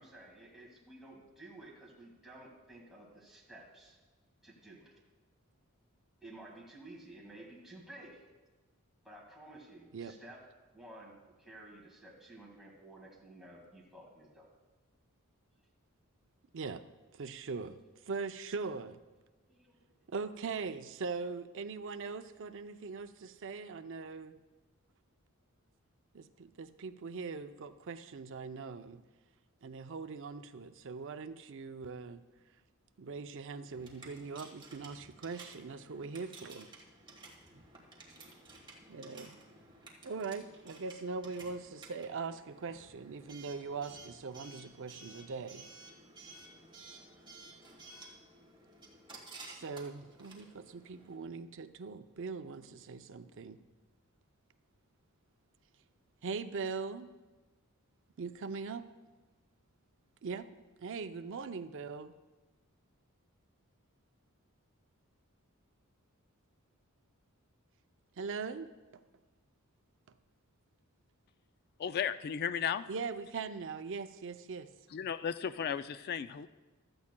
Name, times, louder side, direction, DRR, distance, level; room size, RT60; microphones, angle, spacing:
voice 1, 0.0-4.0 4.4-4.9 6.2-8.2 9.0-10.4 10.7-14.5 19.5-19.8, right 1 dB, ahead, -3 dB, 1.9 m, -53 dB
voice 2, 17.1-17.8 18.1-19.0 20.1-24.4 26.1-29.0 29.6-32.2 33.0-36.7 37.5-37.6 38.9-39.4 40.0-45.7 49.4-53.6 56.2-57.1 58.2-58.9 60.2-60.5 60.8-62.1 68.2-69.0 72.9-74.7, right 4 dB, 60° right, 10 dB, 0.5 m, -41 dB
Coin (dropping) / Alarm, 33.7-51.2, right 2 dB, 20° right, 1.5 m, -54 dB
voice 3, 71.8-72.8 74.9-76.5, left 8 dB, 45° left, 12 dB, 0.3 m, -35 dB
15.5 x 13.0 x 2.2 m, 1.2 s
head